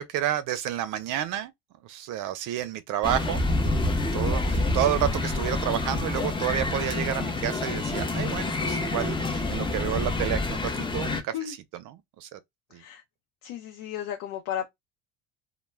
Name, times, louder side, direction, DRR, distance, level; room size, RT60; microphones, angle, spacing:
voice 1, 0.0-1.5 1.8-12.4 12.7-12.8, right 12 dB, 55° right, 0.5 m, -30 dB
sound 1, 3.0-11.2, left 2 dB, 15° left, 0.6 m, -27 dB
voice 2, 13.4-14.7, left 10 dB, 75° left, 0.7 m, -34 dB
2.2 x 2.1 x 3.1 m
supercardioid pair, 105°, 36 cm